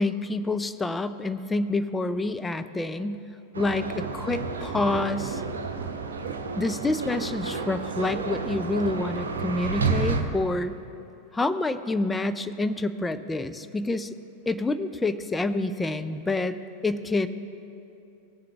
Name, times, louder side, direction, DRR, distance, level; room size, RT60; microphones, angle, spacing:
voice 1, 0.0-3.2 3.6-5.4 6.6-10.8 11.3-14.2 14.5-16.6 16.8-17.3, left 2 dB, 10° left, 11 dB, 0.4 m, -27 dB
sound 1, 3.5-10.2, right 4 dB, 70° right, 0.7 m, -30 dB
17.5 x 7.5 x 3.4 m, 2.8 s
figure-of-eight pair, 90°, 0 cm